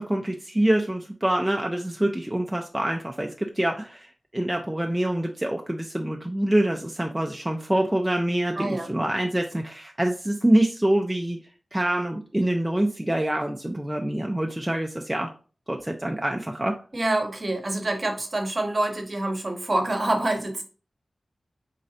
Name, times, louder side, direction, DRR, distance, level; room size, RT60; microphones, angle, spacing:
voice 1, 0.0-11.4 11.7-15.3 15.7-16.7, right 1 dB, 10° right, 2 dB, 0.4 m, -25 dB
voice 2, 8.6-8.9 16.9-20.6, right 2 dB, 40° right, 4 dB, 0.9 m, -26 dB
3.8 x 3.2 x 2.7 m, 0.38 s
wide cardioid pair, 80°, 0 cm